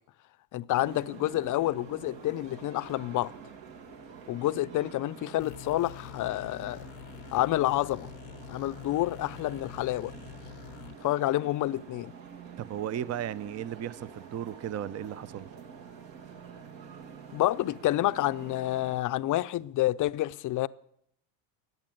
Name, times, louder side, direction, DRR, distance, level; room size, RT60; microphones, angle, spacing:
voice 1, 0.5-3.3 4.3-6.9 7.3-8.1 8.5-10.1 11.0-12.1 17.3-20.7, left 15 dB, 40° left, 0.6 m, -28 dB
sound 1, 0.7-19.0, right 6 dB, 65° right, 2.4 m, -47 dB
sound 2, 5.4-11.0, left 16 dB, 85° left, 0.8 m, -47 dB
voice 2, 12.6-15.5, right 10 dB, 30° right, 0.6 m, -35 dB
15.0 x 9.5 x 9.0 m
supercardioid pair, 100°, 49 cm